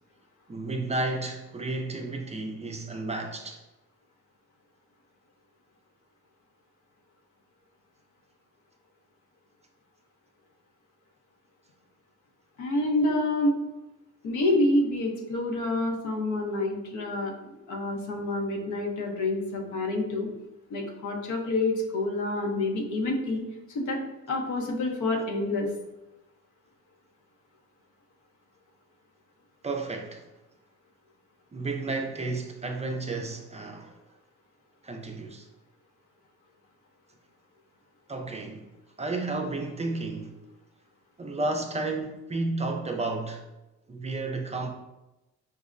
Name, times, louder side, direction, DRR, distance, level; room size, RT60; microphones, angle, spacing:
voice 1, 0.5-3.6 29.6-30.3 31.5-33.9 34.8-35.5 38.1-38.7 39.0-40.4 41.2-43.4 43.9-44.7, right 2 dB, 20° right, 0.4 m, -32 dB
voice 2, 12.6-13.6 14.2-17.3 17.7-20.3 20.7-23.4 23.7-24.0 24.3-25.7, left 2 dB, 75° left, 0.8 m, -27 dB
5.3 x 2.1 x 2.5 m
cardioid pair, 90°, 30 cm